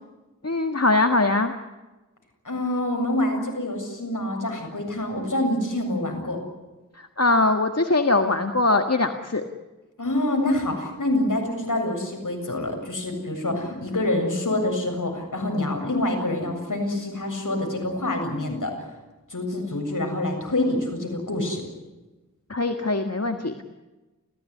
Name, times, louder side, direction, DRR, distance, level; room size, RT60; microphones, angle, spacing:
voice 1, 0.4-1.5 7.0-9.4 22.5-23.6, left 2 dB, 50° left, 5 dB, 1.8 m, -22 dB
voice 2, 2.4-6.4 10.0-18.7 19.3-21.6, left 1 dB, 70° left, 3 dB, 7.5 m, -26 dB
29.5 x 16.0 x 9.9 m, 1.1 s
wide cardioid pair, 50°, 32 cm